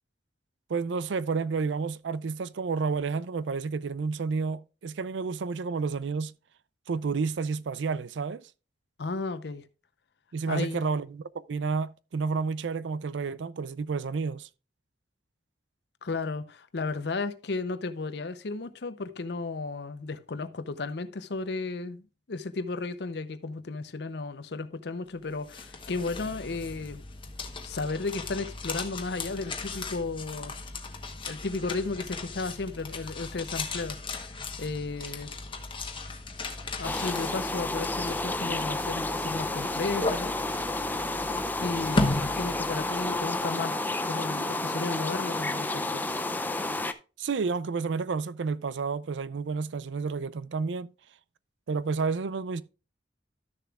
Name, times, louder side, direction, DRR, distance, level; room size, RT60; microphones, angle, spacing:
voice 1, 0.7-6.3 6.9-8.5 10.3-14.5 47.2-50.9 51.7-52.6, right 4 dB, 90° right, 0.4 m, -30 dB
voice 2, 9.0-9.6 10.5-10.8 16.0-27.0 27.6-30.5 31.3-34.0 34.6-35.3 36.8-40.3 41.6-43.8 44.0-46.0, left 3 dB, 65° left, 0.6 m, -34 dB
sound 1, 25.2-43.2, left 2 dB, 30° left, 1.0 m, -36 dB
sound 2, 36.8-46.9, left 2 dB, 10° left, 0.5 m, -31 dB
13.0 x 6.8 x 2.4 m
head